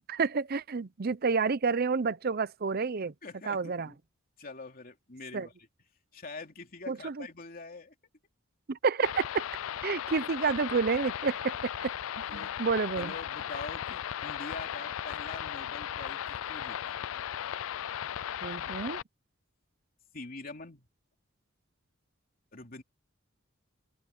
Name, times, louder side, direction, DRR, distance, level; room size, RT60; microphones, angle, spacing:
voice 1, 0.0-3.1 3.5-3.9 5.3-5.5 6.9-7.3 8.7-9.4 9.8-11.9 12.3-13.1 18.4-19.0, right 5 dB, 50° right, 0.6 m, -29 dB
voice 2, 3.2-4.0 4.4-5.7 6.1-7.9 12.3-12.5 12.9-17.0 20.1-20.9 22.5-22.8, left 3 dB, 45° left, 3.1 m, -45 dB
sound 1, 9.0-19.0, left 10 dB, 85° left, 0.4 m, -36 dB
open air
head